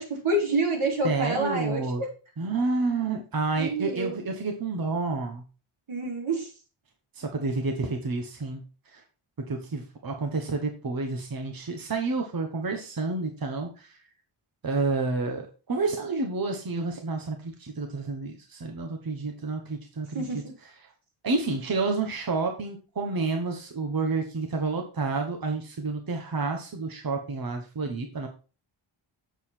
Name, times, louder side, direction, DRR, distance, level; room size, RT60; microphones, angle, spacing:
voice 1, 0.0-2.1 3.6-4.2 5.9-6.5 20.1-20.5, right 2 dB, 80° right, 0 dB, 3.6 m, -28 dB
voice 2, 1.0-2.0 2.4-5.4 7.1-9.0 9.5-14.0 14.6-20.2 21.2-28.3, right 3 dB, 45° right, 4 dB, 1.2 m, -29 dB
8.0 x 7.1 x 4.4 m, 0.35 s
wide cardioid pair, 165°, 50 cm